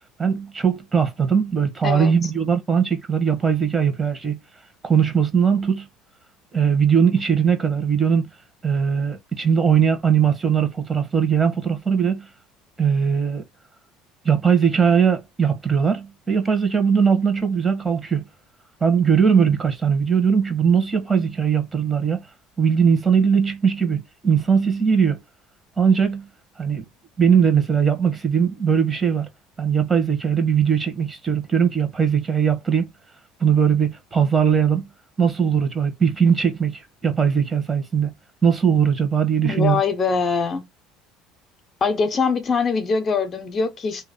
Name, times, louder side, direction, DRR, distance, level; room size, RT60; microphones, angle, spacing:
voice 1, 0.2-4.4 4.8-5.8 6.5-8.3 8.6-12.2 12.8-13.4 14.2-18.2 18.8-22.2 22.6-25.2 25.8-26.3 26.6-26.8 27.2-29.3 29.6-32.9 33.4-34.9 35.2-38.1 38.4-39.8, right 7 dB, 25° right, 1.4 m, -20 dB
voice 2, 39.4-40.7 41.8-44.0, left 5 dB, 40° left, 0.9 m, -22 dB
3.1 x 2.9 x 4.0 m
hypercardioid pair, 75°, 0 cm